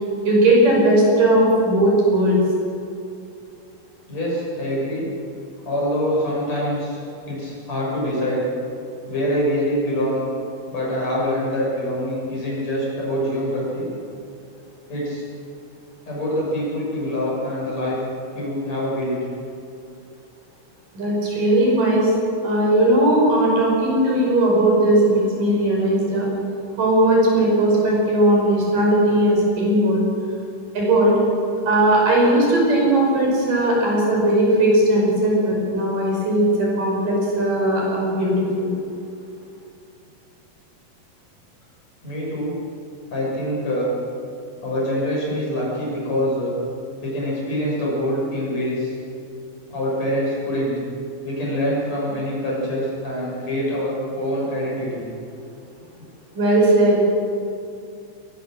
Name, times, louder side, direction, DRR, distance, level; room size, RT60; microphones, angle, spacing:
voice 1, 0.2-2.4 20.9-22.1 22.4-26.3 26.8-30.0 30.7-31.2 31.7-38.7 56.4-57.1, right 1 dB, 75° right, -3 dB, 7.1 m, -18 dB
voice 2, 4.1-5.1 5.6-7.0 7.3-8.4 9.1-10.2 10.7-13.9 14.9-15.2 16.1-18.0 18.3-19.2 42.0-42.5 43.1-43.9 44.6-46.5 47.0-48.9 49.7-50.7 51.2-55.0, equal, 50° left, -4 dB, 8.1 m, -25 dB
22.0 x 19.0 x 6.8 m, 2.5 s
omnidirectional pair, 3.8 m